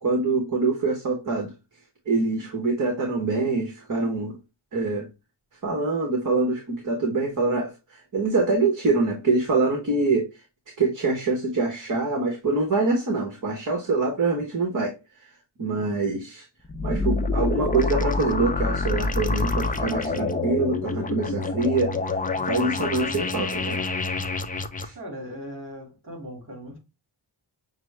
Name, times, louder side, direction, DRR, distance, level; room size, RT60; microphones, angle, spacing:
voice 1, 0.0-1.5 2.1-4.4 4.7-5.1 5.6-10.3 10.8-14.9 15.6-16.4 16.8-22.0 22.4-23.8 24.8-25.0, right 3 dB, 45° right, 1.0 m, -25 dB
sound 1, 16.6-24.9, left 3 dB, 20° left, 0.4 m, -27 dB
voice 2, 22.3-22.7 24.9-26.8, equal, 25° right, 2.2 m, -39 dB
5.9 x 2.0 x 3.2 m
wide cardioid pair, 120°, 45 cm